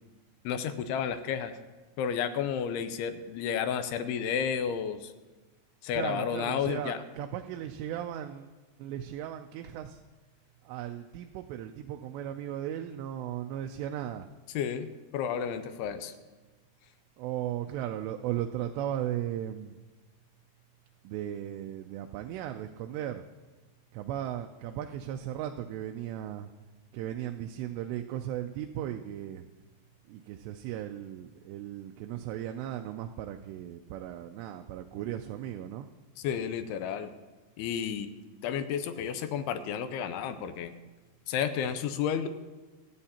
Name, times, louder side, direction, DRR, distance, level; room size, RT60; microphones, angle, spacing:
voice 1, 0.4-1.5 2.0-5.1 5.8-7.0 14.5-14.9 15.1-16.1 36.2-37.1 37.6-38.1 38.4-40.7 41.3-42.3, left 8 dB, 80° left, 10 dB, 2.5 m, -31 dB
voice 2, 5.9-8.4 8.8-9.9 10.7-14.3 17.2-19.7 21.1-23.2 24.0-26.5 26.9-29.4 30.1-35.9, right 11 dB, 85° right, 5 dB, 2.7 m, -36 dB
25.5 x 8.9 x 2.9 m, 1.2 s
omnidirectional pair, 4.9 m